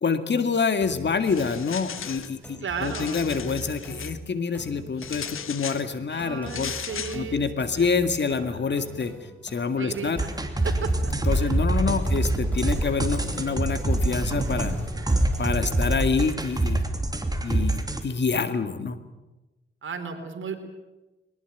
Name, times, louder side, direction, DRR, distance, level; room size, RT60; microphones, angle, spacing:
voice 1, 0.0-6.7 7.1-9.1 9.4-10.2 11.2-14.7 15.4-16.8 17.4-19.0, left 5 dB, 60° left, 9 dB, 2.2 m, -27 dB
sound 1, 0.8-15.8, equal, 5° left, 6.4 m, -43 dB
sound 2, 1.2-2.3 2.7-4.1 5.0-5.9 6.5-7.2, left 8 dB, 85° left, 1.4 m, -37 dB
voice 2, 2.6-3.2 6.1-7.4 7.7-7.9 8.7-8.8 9.8-10.3 10.6-11.1 11.4-11.6 19.8-20.6, right 5 dB, 70° right, 5 dB, 4.1 m, -34 dB
sound 3, 10.2-18.0, right 1 dB, 20° right, 3.0 m, -25 dB
22.0 x 19.5 x 9.3 m, 1.1 s
cardioid pair, 85°, 21 cm